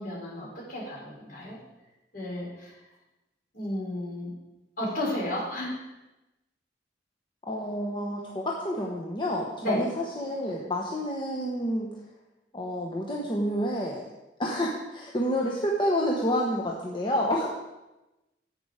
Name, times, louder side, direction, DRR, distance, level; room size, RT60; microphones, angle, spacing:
voice 1, 0.0-1.6 2.1-2.7 3.5-4.3 4.8-5.7 9.6-9.8, left 1 dB, 55° left, -4 dB, 4.3 m, -32 dB
voice 2, 7.5-12.0 12.5-14.0 14.4-17.5, equal, 30° left, -2 dB, 1.1 m, -29 dB
11.0 x 8.7 x 5.0 m, 1.0 s
head